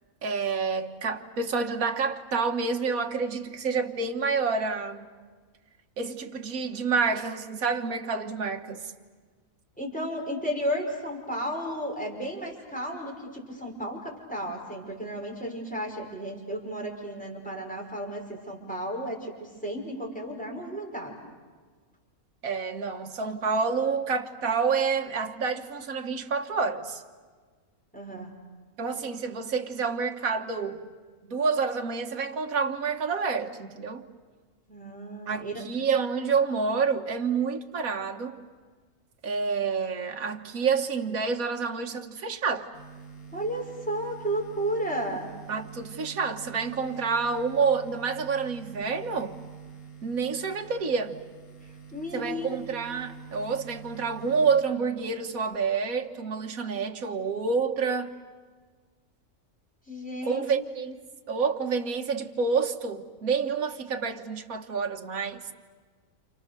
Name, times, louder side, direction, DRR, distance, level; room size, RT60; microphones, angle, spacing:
voice 1, 0.2-5.1 6.0-8.9 22.4-27.0 28.8-30.9 31.3-34.1 35.3-38.4 39.2-42.7 45.5-49.4 50.0-51.2 52.1-58.1 60.2-61.0 61.3-65.4, right 5 dB, 70° right, 1.8 m, -28 dB
voice 2, 9.8-21.2 27.9-28.3 34.7-35.6 43.3-45.3 51.9-52.6 59.9-60.4, equal, 5° left, 5.4 m, -33 dB
sound 1, 42.7-55.7, right 7 dB, 70° left, 2.5 m, -46 dB
29.5 x 29.0 x 6.8 m
omnidirectional pair, 1.6 m